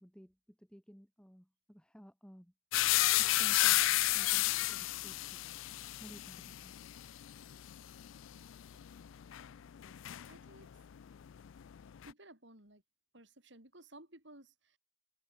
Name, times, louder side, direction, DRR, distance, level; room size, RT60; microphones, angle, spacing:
voice 1, 0.0-2.5 3.2-5.4 6.0-6.7, equal, 5° left, 3.2 m, -56 dB
sound 1, 2.7-10.7 11.0-12.1, left 17 dB, 70° left, 0.4 m, -32 dB
voice 2, 10.3-10.8 12.0-12.8 13.1-14.8, right 1 dB, 55° right, 5.1 m, -57 dB
head